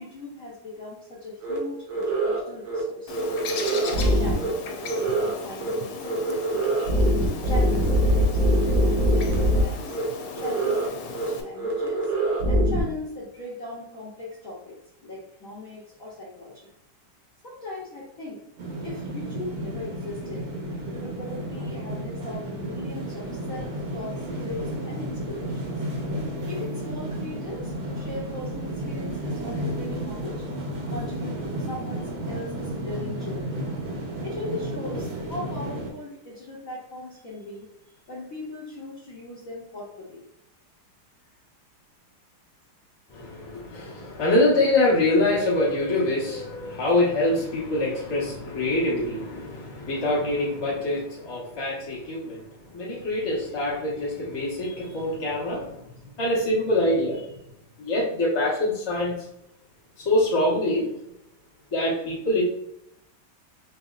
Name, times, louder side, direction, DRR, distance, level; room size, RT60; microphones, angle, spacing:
voice 1, 0.0-3.2 3.8-6.9 7.4-10.0 10.3-12.1 12.5-16.7 17.4-18.4 18.8-20.4 20.9-25.8 26.4-30.4 30.9-33.6 34.2-37.7 38.1-40.2, left 2 dB, 60° left, -6 dB, 0.9 m, -38 dB
sound 1, 1.4-1.6 1.9-2.4 2.7-2.8 3.1-4.5 4.8-5.3 5.6-5.7 6.0-9.6 9.9-10.0 10.4-10.9 11.1-11.3 11.6-12.8, right 1 dB, 80° right, 1.7 m, -23 dB
Bird, 3.1-11.4, left 5 dB, 80° left, 1.4 m, -37 dB
sound 2, 18.6-35.9, right 1 dB, 60° right, 1.1 m, -32 dB
voice 2, 43.1-52.4 52.7-57.4 57.8-59.2 60.0-60.9 61.7-62.4, left 1 dB, 25° left, -6 dB, 0.6 m, -25 dB
4.9 x 2.7 x 2.4 m, 0.79 s
omnidirectional pair, 2.3 m